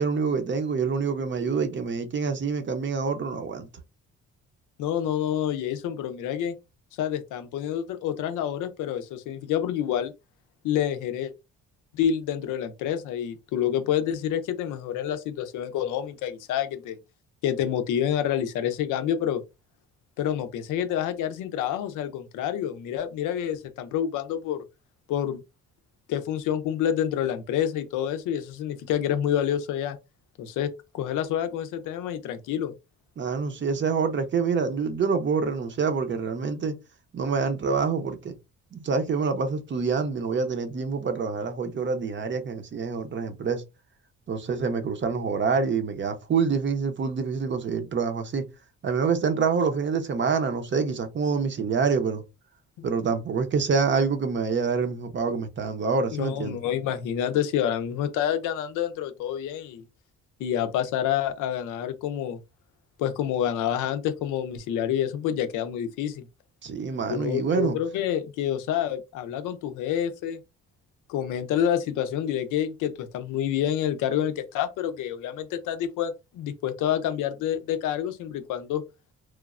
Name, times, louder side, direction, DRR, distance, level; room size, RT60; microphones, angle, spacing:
voice 1, 0.0-3.7 33.2-36.8 37.1-38.3 38.7-43.6 44.3-48.4 48.8-52.2 52.8-56.6 66.6-67.8, right 5 dB, 40° right, 0.6 m, -26 dB
voice 2, 4.8-6.6 7.0-10.1 10.6-11.3 11.9-17.0 17.4-19.4 20.2-24.6 25.1-25.4 26.1-30.0 30.4-32.7 52.8-52.9 56.1-59.8 60.4-62.4 63.0-66.3 67.1-70.4 71.1-78.8, left 10 dB, 90° left, 0.5 m, -28 dB
3.0 x 2.0 x 2.4 m
cardioid pair, 90°, 30 cm